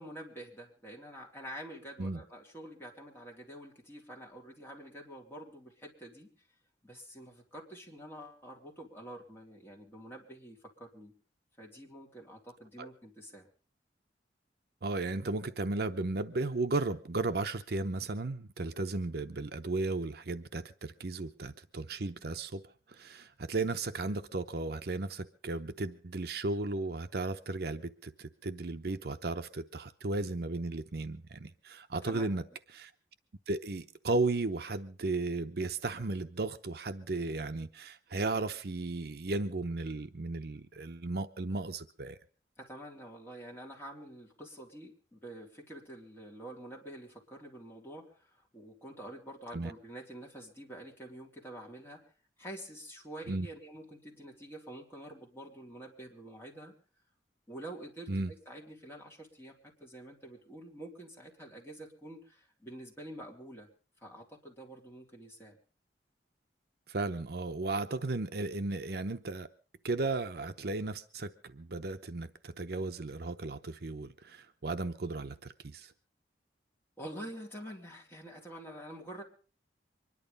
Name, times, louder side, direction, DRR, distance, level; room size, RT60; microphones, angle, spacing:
voice 1, 0.0-6.3 6.8-11.1 11.6-13.5 32.1-32.3 42.6-52.1 52.4-56.7 57.5-63.7 64.0-65.6 77.0-79.2, right 1 dB, 15° left, 3.5 m, -47 dB
voice 2, 14.8-22.6 22.9-32.4 32.7-32.9 33.5-42.2 49.5-49.7 53.3-53.5 58.1-58.3 66.9-69.5 69.8-75.9, right 3 dB, 60° right, 0.7 m, -35 dB
24.0 x 11.0 x 5.3 m
head